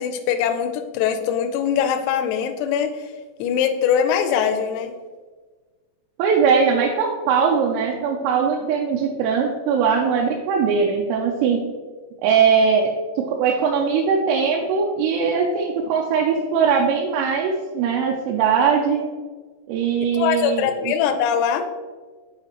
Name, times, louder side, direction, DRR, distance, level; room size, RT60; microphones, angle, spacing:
voice 1, 0.0-2.9 3.4-4.9 20.1-21.6, left 8 dB, 90° left, 5 dB, 3.3 m, -22 dB
voice 2, 6.2-11.6 12.2-12.9 13.2-19.0 19.7-20.9, right 6 dB, 85° right, -1 dB, 3.3 m, -20 dB
8.6 x 4.9 x 2.9 m, 1.4 s
omnidirectional pair, 5.9 m